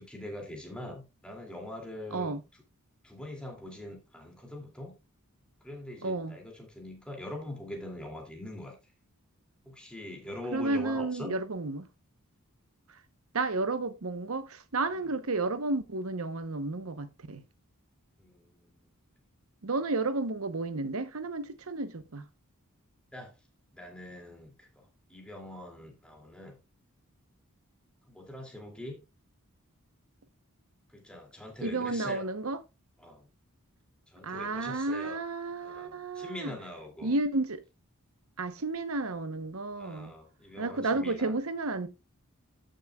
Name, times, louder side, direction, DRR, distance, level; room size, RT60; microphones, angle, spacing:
voice 1, 0.0-2.3 3.0-4.9 5.6-8.8 9.7-11.3 18.2-18.8 23.1-23.3 23.7-26.6 28.1-29.0 30.9-32.3 33.0-33.3 34.1-35.2 35.6-37.1 39.7-41.3, left 1 dB, 5° left, 2.6 m, -43 dB
voice 2, 2.1-2.4 6.0-6.4 10.5-11.9 12.9-13.0 13.3-17.4 19.6-22.3 31.6-32.6 34.2-36.6 37.0-37.6 38.4-40.1 40.6-41.9, right 3 dB, 70° right, 0.9 m, -32 dB
14.0 x 6.5 x 2.3 m
head